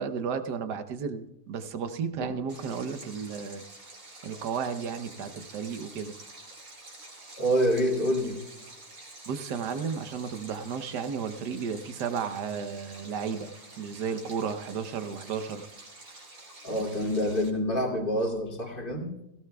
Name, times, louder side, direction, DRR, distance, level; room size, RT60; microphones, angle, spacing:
voice 1, 0.0-3.6 4.2-6.1 9.3-13.5 13.8-15.7, right 6 dB, 85° right, 9 dB, 1.5 m, -33 dB
Stream, 2.5-17.5, right 2 dB, 55° right, 3.0 m, -48 dB
voice 2, 7.4-8.4 16.6-19.1, equal, 30° left, 0 dB, 2.6 m, -27 dB
17.5 x 17.5 x 2.3 m, 0.89 s
omnidirectional pair, 1.7 m